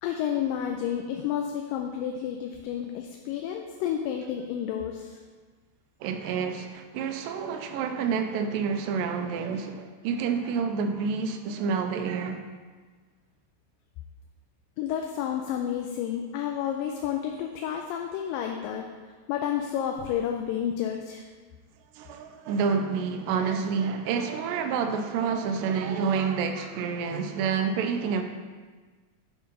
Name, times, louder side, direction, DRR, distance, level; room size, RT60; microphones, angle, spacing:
voice 1, 0.0-5.2 14.8-18.9 19.3-21.2, left 9 dB, 85° left, 3 dB, 2.3 m, -30 dB
voice 2, 6.0-12.5 22.0-28.2, right 6 dB, 90° right, 6 dB, 2.3 m, -28 dB
8.4 x 4.6 x 5.4 m, 1.4 s
omnidirectional pair, 3.9 m